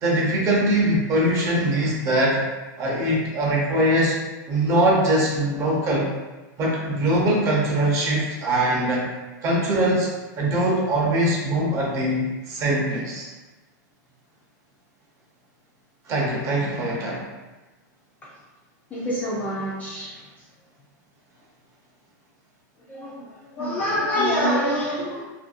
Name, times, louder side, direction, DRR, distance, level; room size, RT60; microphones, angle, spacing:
voice 1, 0.0-2.4 2.8-4.1 4.5-6.1 6.6-9.1 9.4-10.1 10.3-13.3 16.1-17.2, right 1 dB, 30° right, -3 dB, 0.6 m, -22 dB
voice 2, 18.9-20.1 22.9-23.2 23.6-25.2, equal, 15° left, -6 dB, 0.4 m, -25 dB
2.5 x 2.1 x 2.4 m, 1.1 s
supercardioid pair, 140°, 10 cm